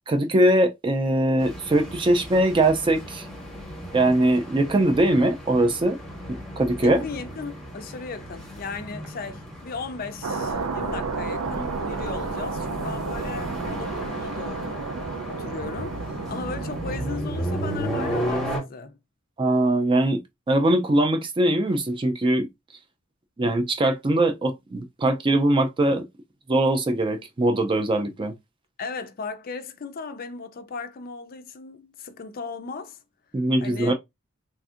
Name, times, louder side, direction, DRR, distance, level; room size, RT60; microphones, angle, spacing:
voice 1, 0.1-3.3 3.9-6.0 6.3-7.0 19.4-20.2 20.5-22.5 23.4-26.1 26.5-28.3 33.3-33.9, right 1 dB, 20° right, 0.3 m, -21 dB
sound 1, 1.4-18.6, equal, ahead, 0.8 m, -35 dB
voice 2, 6.8-14.9 15.3-19.0 28.8-33.0 33.6-33.9, left 4 dB, 40° left, 0.4 m, -36 dB
sound 2, 10.2-17.2, right 4 dB, 90° right, 0.5 m, -31 dB
sound 3, 10.5-16.6, equal, 50° right, 0.8 m, -42 dB
3.4 x 2.6 x 2.4 m
head